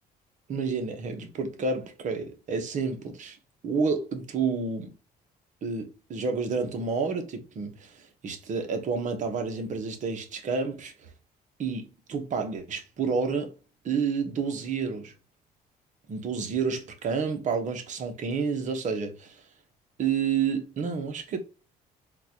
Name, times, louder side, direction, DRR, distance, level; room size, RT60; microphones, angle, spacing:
voice 1, 0.5-3.4 3.6-4.9 5.6-10.9 11.6-13.5 13.8-15.1 16.1-19.4 20.0-21.4, right 5 dB, 45° right, 0.9 m, -30 dB
3.9 x 2.4 x 2.8 m
cardioid pair, 110°, 17 cm